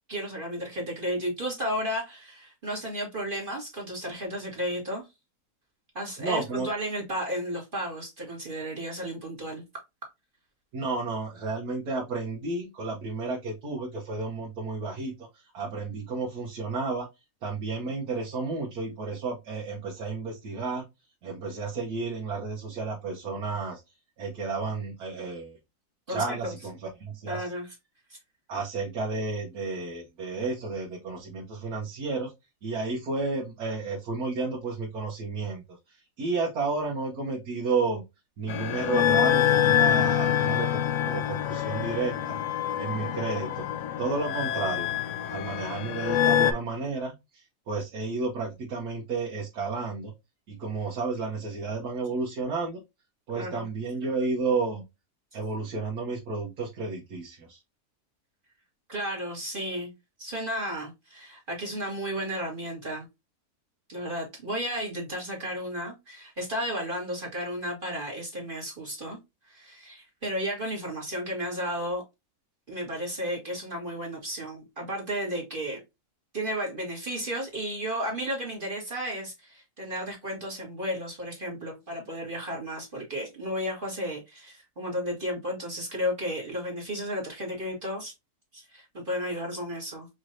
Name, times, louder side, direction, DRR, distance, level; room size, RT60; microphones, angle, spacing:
voice 1, 0.1-5.0 5.9-9.6 26.1-26.5 27.3-27.7 53.3-53.6 58.9-59.9 60.2-63.1 63.9-69.2 69.5-72.0 72.7-75.8 76.3-88.1 88.5-90.1, equal, 35° right, 1.6 m, -33 dB
voice 2, 6.2-6.7 10.7-17.1 17.4-20.8 21.2-23.8 24.2-25.6 26.1-27.4 28.5-32.3 32.6-38.0 38.4-42.4 42.8-43.7 44.0-44.9 45.3-50.1 50.5-52.8 53.3-54.8 55.3-57.6, right 3 dB, 80° right, 1.5 m, -32 dB
sound 1, 38.5-46.5, left 10 dB, 65° left, 0.8 m, -26 dB
5.2 x 3.1 x 2.5 m
omnidirectional pair, 1.6 m